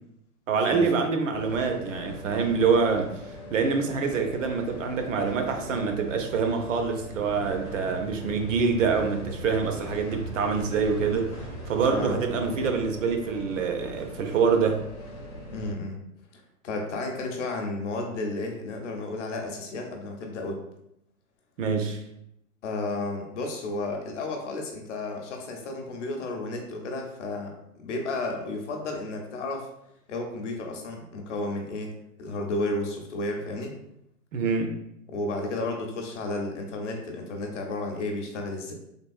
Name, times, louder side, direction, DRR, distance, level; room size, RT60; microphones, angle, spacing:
voice 1, 0.5-3.1 3.5-11.4 11.7-14.8 15.3-15.4 21.6-22.0 34.3-34.8, right 5 dB, 60° right, 5 dB, 0.5 m, -25 dB
sound 1, 1.3-15.7, left 1 dB, 20° left, 0.4 m, -40 dB
voice 2, 15.5-16.0 16.6-20.6 22.6-27.5 27.8-29.7 30.1-31.9 32.2-33.7 35.1-38.7, left 2 dB, 55° left, 2 dB, 0.7 m, -32 dB
3.4 x 2.0 x 2.4 m, 0.78 s
hypercardioid pair, 145°, 45 cm